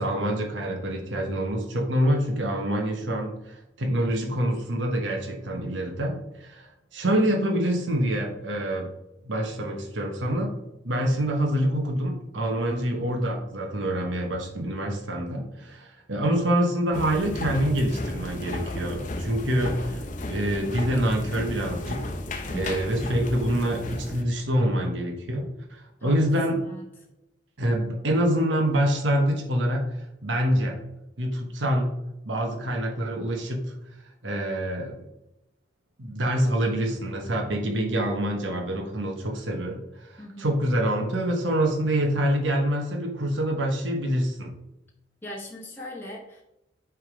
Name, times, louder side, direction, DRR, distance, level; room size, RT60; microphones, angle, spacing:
voice 1, 0.0-8.9 9.2-10.5 10.8-20.0 20.3-22.1 22.5-26.6 27.6-29.9 30.2-30.8 31.2-31.9 32.2-33.7 34.2-34.9 36.0-44.5, right 1 dB, 80° right, 1 dB, 1.1 m, -26 dB
sound 1, 16.9-24.2, left 2 dB, 45° left, 0.7 m, -34 dB
voice 2, 22.4-22.7 26.0-26.2 26.5-26.9 40.2-40.5 45.2-46.4, left 1 dB, 10° left, -3 dB, 1.0 m, -40 dB
7.9 x 3.6 x 5.0 m, 0.93 s
head